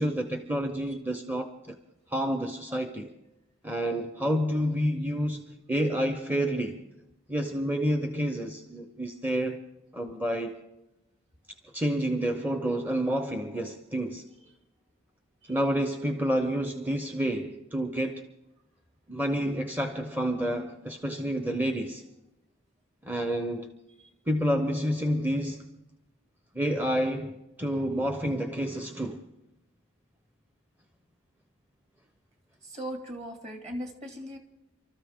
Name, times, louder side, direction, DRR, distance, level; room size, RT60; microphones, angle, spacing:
voice 1, 0.0-1.8 2.1-3.1 3.6-6.8 7.3-9.6 9.9-10.6 11.7-14.3 15.5-18.3 19.1-22.0 23.0-23.7 24.3-25.7 26.5-29.2, equal, 10° right, 0.7 m, -29 dB
voice 2, 32.6-34.4, equal, 35° right, 2.4 m, -38 dB
29.0 x 13.5 x 3.6 m
head